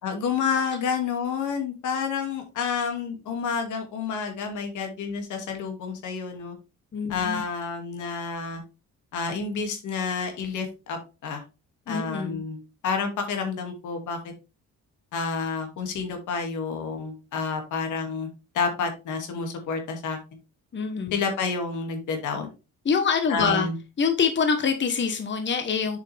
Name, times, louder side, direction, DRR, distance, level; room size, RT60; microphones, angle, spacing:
voice 1, 0.0-6.6 7.1-8.6 9.1-11.4 11.9-14.2 15.1-18.3 18.5-20.2 21.1-22.5 23.3-23.7, left 5 dB, 80° left, 2.5 m, -29 dB
voice 2, 6.9-7.5 11.9-12.4 20.7-21.2 22.8-23.7 24.0-26.0, left 6 dB, 40° left, 1.3 m, -25 dB
7.5 x 6.4 x 3.5 m
cardioid pair, 90°, 30 cm